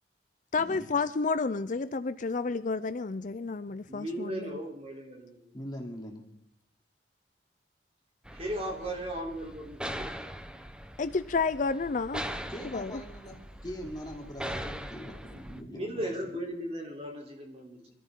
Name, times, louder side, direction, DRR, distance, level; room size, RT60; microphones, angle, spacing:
voice 1, 0.5-4.5 11.0-12.2 12.7-13.0, left 4 dB, 45° left, 13 dB, 0.5 m, -30 dB
voice 2, 3.9-5.6 8.4-10.1 15.3-17.9, right 1 dB, 35° right, 1 dB, 3.6 m, -37 dB
voice 3, 5.5-6.2 12.5-13.4 13.6-16.1, equal, 25° left, 0 dB, 3.0 m, -42 dB
sound 1, 8.3-15.6, equal, 5° right, 0.9 m, -41 dB
25.0 x 13.5 x 3.8 m, 0.74 s
head